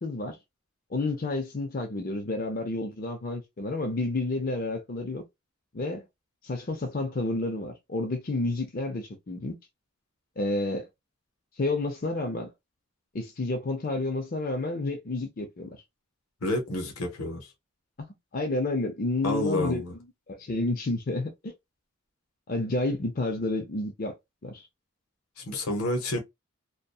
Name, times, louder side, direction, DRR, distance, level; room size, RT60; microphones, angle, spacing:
voice 1, 0.0-0.4 0.9-5.2 5.7-6.0 6.4-9.6 10.4-10.9 11.6-12.5 13.1-15.7 18.0-18.1 18.3-19.8 20.3-21.5 22.5-24.2 24.4-24.7, left 2 dB, 40° left, 0.5 m, -30 dB
voice 2, 16.4-17.5 19.2-19.9 25.4-26.2, left 1 dB, 85° left, 0.9 m, -29 dB
2.7 x 2.2 x 2.2 m
head